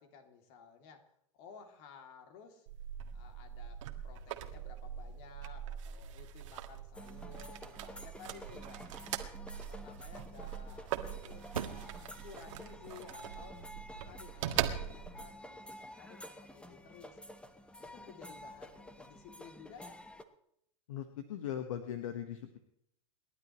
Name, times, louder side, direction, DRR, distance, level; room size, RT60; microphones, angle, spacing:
voice 1, 0.0-2.7 3.1-8.9 9.5-13.6 14.1-20.0, left 6 dB, 55° left, 5 dB, 2.9 m, -55 dB
sound 1, 2.7-15.3, right 10 dB, 65° right, 1.6 m, -42 dB
sound 2, 6.9-20.2, left 1 dB, 5° left, 1.2 m, -51 dB
sound 3, 11.5-16.2, right 8 dB, 80° right, 1.0 m, -49 dB
voice 2, 20.9-22.6, left 10 dB, 70° left, 8 dB, 1.4 m, -39 dB
29.0 x 11.5 x 3.2 m, 0.75 s
hypercardioid pair, 95°, 18 cm